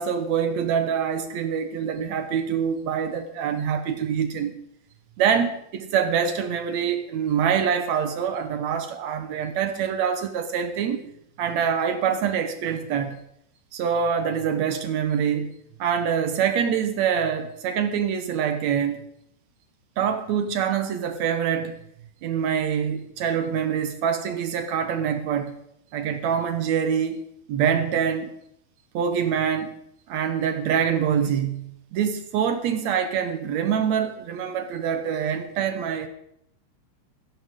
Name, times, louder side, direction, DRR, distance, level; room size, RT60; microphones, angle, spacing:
voice 1, 0.0-4.5 5.2-11.0 11.4-13.2 13.7-15.5 15.8-19.0 20.0-21.7 22.2-25.5 25.9-27.2 27.5-28.3 28.9-29.7 30.1-36.1, right 7 dB, 80° right, 8 dB, 1.6 m, -25 dB
16.0 x 15.0 x 3.7 m, 0.72 s
omnidirectional pair, 4.5 m